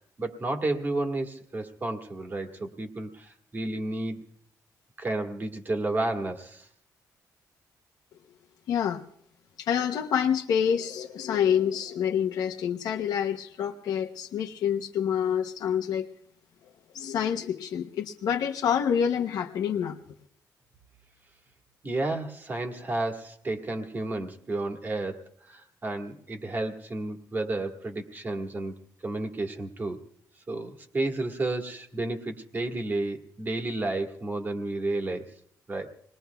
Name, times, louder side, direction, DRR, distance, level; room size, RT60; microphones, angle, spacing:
voice 1, 0.2-4.2 5.0-6.7 21.8-28.7 29.0-30.0 30.5-35.3 35.7-35.9, right 2 dB, 30° right, 4 dB, 1.6 m, -31 dB
voice 2, 8.7-9.0 9.6-16.1 16.9-20.0, left 8 dB, 80° left, 1 dB, 0.7 m, -27 dB
27.0 x 20.5 x 2.3 m, 0.67 s
cardioid pair, 120°, 7 cm